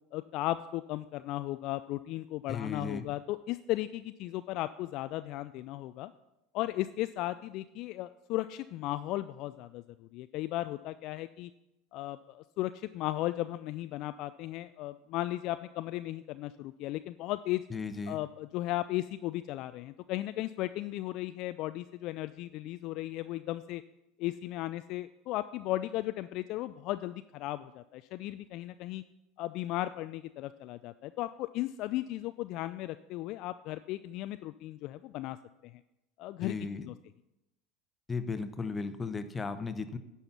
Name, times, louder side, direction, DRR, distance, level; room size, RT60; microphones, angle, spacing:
voice 1, 0.1-6.1 6.5-11.5 11.9-17.6 18.1-23.8 24.2-29.0 29.4-35.4 35.6-35.7 36.2-36.6 36.8-36.9, left 16 dB, 55° left, 12 dB, 0.3 m, -36 dB
voice 2, 2.5-3.0 17.7-18.2 36.4-36.9 38.1-40.0, left 4 dB, 20° left, 10 dB, 0.9 m, -36 dB
10.5 x 5.6 x 6.8 m, 0.91 s
figure-of-eight pair, 75°, 0 cm